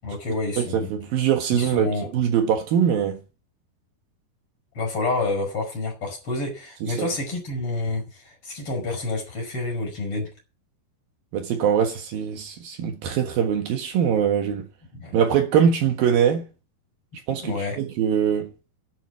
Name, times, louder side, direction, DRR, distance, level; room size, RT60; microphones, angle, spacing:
voice 1, 0.0-0.9 1.5-2.1 4.7-10.3 14.9-15.2 17.4-17.8, left 3 dB, 35° left, 6.2 m, -28 dB
voice 2, 0.6-3.2 7.0-7.1 11.3-14.7 15.1-16.4 17.3-18.5, right 8 dB, 65° right, 3.1 m, -22 dB
11.0 x 8.4 x 8.3 m
omnidirectional pair, 4.6 m